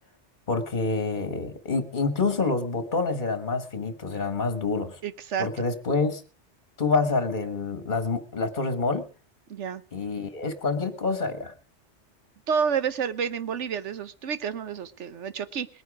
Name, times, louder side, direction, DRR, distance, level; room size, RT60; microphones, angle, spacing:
voice 1, 0.5-5.0 5.4-6.2 6.8-9.1 9.9-11.5, left 3 dB, 45° left, 10 dB, 1.8 m, -27 dB
voice 2, 5.0-5.5 9.5-9.8 12.5-15.7, right 7 dB, 85° right, 14 dB, 1.3 m, -29 dB
20.5 x 9.4 x 4.9 m, 0.37 s
omnidirectional pair, 1.2 m